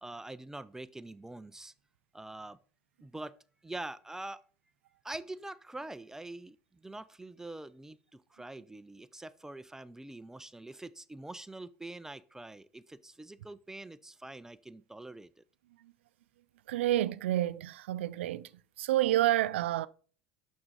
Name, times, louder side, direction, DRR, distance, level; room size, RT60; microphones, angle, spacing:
voice 1, 0.0-1.7 2.1-2.6 3.0-3.3 3.6-4.4 5.0-15.4, right 2 dB, 10° right, 0.5 m, -44 dB
voice 2, 16.7-18.5 18.8-19.9, right 14 dB, 80° right, 0.4 m, -29 dB
6.4 x 6.0 x 5.3 m
hypercardioid pair, 85°, 6 cm